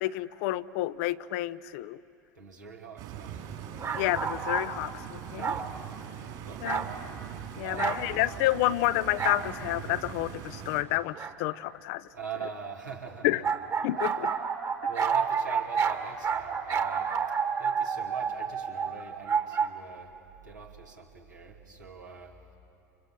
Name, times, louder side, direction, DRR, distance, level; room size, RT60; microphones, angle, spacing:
voice 1, 0.0-2.0 4.0-5.5 6.6-6.9 7.6-12.0 13.2-13.4 13.8-14.3, left 16 dB, 55° left, 16 dB, 0.6 m, -29 dB
voice 2, 2.3-3.4 3.8-4.3 5.2-6.9 7.6-8.1 12.1-13.6 13.9-14.2 14.9-20.2 20.4-22.4, right 6 dB, 85° right, -1 dB, 2.9 m, -43 dB
Stream, 3.0-10.8, right 8 dB, 50° right, 4.5 m, -41 dB
sound 1, 3.8-4.7 5.4-5.7 6.6-6.9 7.8-8.0 9.2-9.4 11.1-11.3 13.4-19.7, right 6 dB, 35° right, 1.9 m, -29 dB
29.5 x 26.5 x 7.0 m, 2.6 s
figure-of-eight pair, 75°, 9 cm